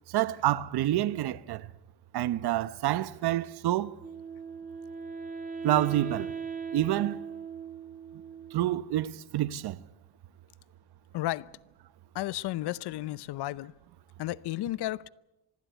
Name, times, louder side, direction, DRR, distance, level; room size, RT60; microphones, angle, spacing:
voice 1, 0.1-1.7 2.1-4.0 5.6-6.3 6.7-7.2 8.5-9.8, right 13 dB, 55° right, 1.0 m, -28 dB
Wind instrument woodwind instrument, 4.0-9.1, right 6 dB, 20° right, 1.8 m, -39 dB
voice 2, 11.1-11.5 12.1-13.7 14.2-15.1, left 16 dB, 60° left, 0.8 m, -33 dB
25.0 x 20.5 x 8.2 m
supercardioid pair, 90°, 45 cm